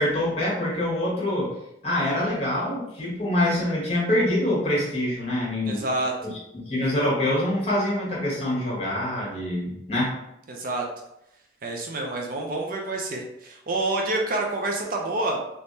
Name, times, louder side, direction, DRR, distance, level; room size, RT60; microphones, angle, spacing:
voice 1, 0.0-1.5 1.8-5.8 6.2-10.2, left 1 dB, 35° left, -5 dB, 1.3 m, -25 dB
voice 2, 5.7-6.1 10.5-10.8 11.6-15.4, right 2 dB, 50° right, 1 dB, 0.5 m, -28 dB
3.5 x 2.9 x 2.6 m, 0.83 s
head